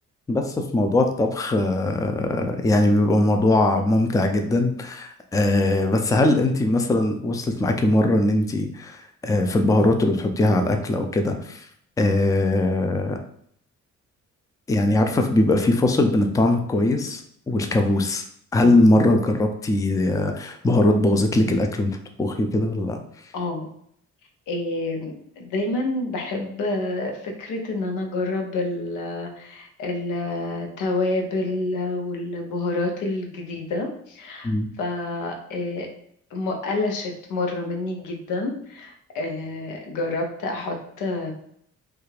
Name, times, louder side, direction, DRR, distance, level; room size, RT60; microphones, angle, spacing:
voice 1, 0.3-11.7 12.0-13.2 14.7-18.2 18.5-23.0 34.4-34.7, left 2 dB, 10° left, 5 dB, 0.4 m, -21 dB
voice 2, 23.3-23.7 24.5-34.5 34.8-35.9 36.3-41.3, left 2 dB, 85° left, 3 dB, 0.8 m, -28 dB
3.3 x 2.4 x 3.2 m, 0.67 s
cardioid pair, 90°, 30 cm